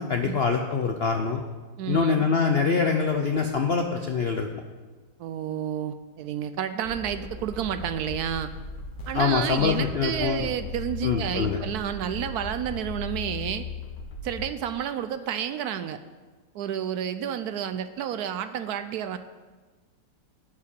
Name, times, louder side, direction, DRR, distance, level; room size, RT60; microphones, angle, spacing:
voice 1, 0.0-1.4 1.9-4.5 9.1-10.5 11.0-11.6, left 5 dB, 65° left, 4 dB, 0.6 m, -24 dB
voice 2, 1.8-2.3 5.2-8.5 9.1-13.7 14.2-16.0 16.5-19.2, right 9 dB, 70° right, 11 dB, 1.0 m, -30 dB
sound 1, 6.8-14.5, left 3 dB, 90° left, 1.9 m, -37 dB
11.0 x 4.8 x 8.4 m, 1.3 s
omnidirectional pair, 1.8 m